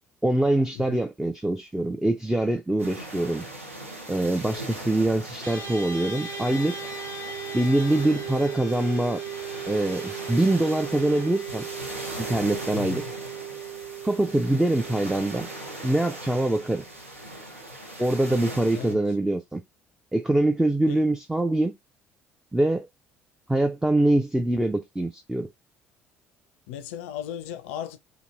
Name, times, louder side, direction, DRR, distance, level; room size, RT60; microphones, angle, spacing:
voice 1, 0.2-3.5 4.1-6.8 7.5-9.2 9.7-11.7 12.2-13.0 14.0-15.5 15.8-16.8 18.0-19.6 20.1-21.7 22.5-22.9 23.5-25.5, right 1 dB, 5° right, 0.3 m, -24 dB
sound 1, 2.8-18.9, right 1 dB, 90° right, 0.6 m, -39 dB
sound 2, 5.4-16.9, right 7 dB, 70° right, 1.4 m, -37 dB
voice 2, 12.7-13.1 18.7-19.0 20.9-21.1 26.7-28.0, left 10 dB, 65° left, 0.4 m, -36 dB
2.8 x 2.6 x 2.3 m
figure-of-eight pair, 55°, 7 cm